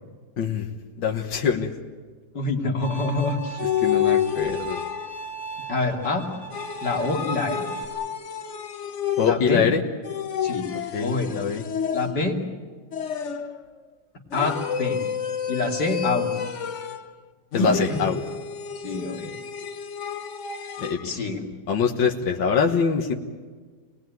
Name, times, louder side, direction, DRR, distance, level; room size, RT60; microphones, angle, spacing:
voice 1, 0.4-0.7 1.0-1.7 3.8-4.8 9.2-9.8 10.9-11.6 17.5-18.2 20.8-21.1 21.7-23.1, left 6 dB, 80° left, 1 dB, 2.1 m, -24 dB
voice 2, 2.3-3.6 5.7-6.2 6.8-7.7 9.2-9.7 10.4-10.7 11.0-11.4 11.9-12.4 14.3-15.0 15.5-16.3 17.6-18.1 18.8-19.3 21.0-21.4, left 3 dB, 65° left, 1 dB, 3.3 m, -26 dB
Bowed string instrument, 2.8-7.8, right 3 dB, 25° right, 3.8 m, -38 dB
sound 1, 3.6-5.3 6.5-9.6 10.0-12.4 12.9-13.6 14.3-17.1 17.5-21.0, left 8 dB, 45° left, 1.1 m, -29 dB
27.5 x 19.5 x 9.4 m, 1.5 s
omnidirectional pair, 2.0 m